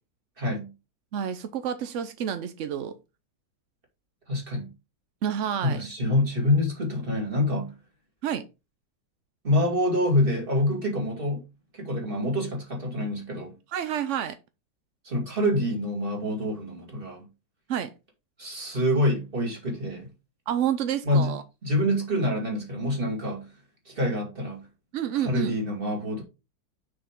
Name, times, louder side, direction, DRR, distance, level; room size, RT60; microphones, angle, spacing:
voice 1, 0.4-0.7 4.3-4.7 5.6-7.7 9.4-11.4 11.7-13.5 15.0-17.3 18.4-20.1 21.0-21.3 21.6-23.5 23.9-24.7 25.1-26.2, left 1 dB, 30° right, 2.6 m, -26 dB
voice 2, 1.1-2.9 5.2-5.8 8.2-8.4 13.7-14.4 17.7-17.9 20.5-21.4 24.9-25.6, right 9 dB, 70° right, 0.7 m, -29 dB
6.6 x 6.1 x 3.6 m
omnidirectional pair, 2.0 m